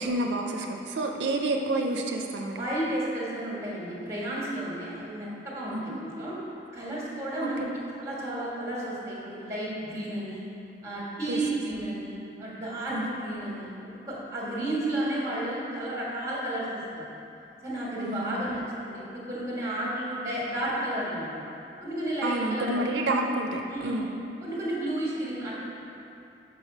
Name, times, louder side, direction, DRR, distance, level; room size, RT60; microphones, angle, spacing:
voice 1, 0.0-2.6 5.7-6.0 7.4-7.7 11.3-11.4 12.9-13.1 18.0-18.5 22.2-24.1, right 2 dB, 85° right, 2 dB, 0.4 m, -29 dB
voice 2, 2.6-6.4 6.7-7.6 8.0-10.4 10.8-13.7 14.1-17.1 17.6-21.3 21.8-22.9 23.7-24.1 24.4-25.6, right 1 dB, 15° right, -5 dB, 1.4 m, -32 dB
5.4 x 4.9 x 5.3 m, 2.9 s
head